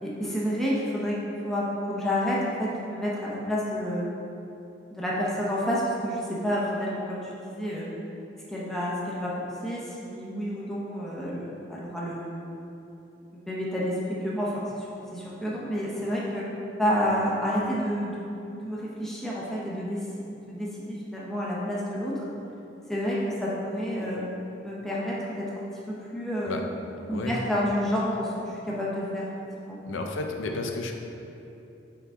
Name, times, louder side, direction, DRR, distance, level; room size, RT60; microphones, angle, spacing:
voice 1, 0.0-4.1 4.9-7.9 8.5-12.6 13.5-16.5 16.8-18.3 18.6-20.1 20.3-22.2 22.9-24.2 24.6-26.6 27.1-29.3 29.6-29.8, equal, ahead, -7 dB, 0.7 m, -29 dB
voice 2, 29.8-30.9, left 2 dB, 85° left, 3 dB, 0.6 m, -32 dB
5.8 x 4.5 x 3.6 m, 2.9 s
head